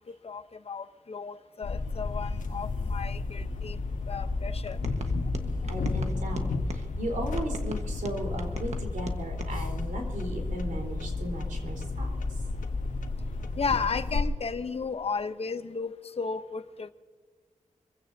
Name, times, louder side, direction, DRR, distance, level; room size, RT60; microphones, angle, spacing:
voice 1, 0.2-3.8 4.1-4.8 13.6-16.9, left 5 dB, 50° left, 10 dB, 0.8 m, -34 dB
sound 1, 1.6-14.2, left 3 dB, 85° left, 1.3 m, -32 dB
sound 2, 4.7-6.9 7.4-9.5, right 3 dB, 60° right, 1.4 m, -42 dB
voice 2, 5.6-12.4, right 1 dB, 85° right, 2 dB, 4.1 m, -36 dB
25.0 x 16.0 x 2.8 m, 1.5 s
wide cardioid pair, 125°, 13 cm